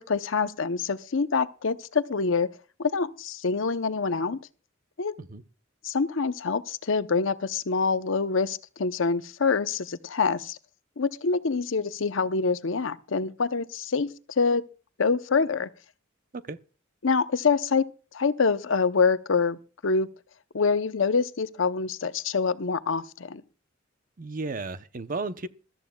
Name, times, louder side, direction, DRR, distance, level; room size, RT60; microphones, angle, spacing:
voice 1, 0.0-2.5 2.8-4.4 5.0-5.1 5.8-10.6 11.0-14.6 15.0-15.7 17.0-17.8 18.1-20.1 20.5-23.4, left 4 dB, 70° left, 0.7 m, -26 dB
voice 2, 24.2-25.5, right 3 dB, 45° right, 0.7 m, -34 dB
20.5 x 13.5 x 2.3 m
head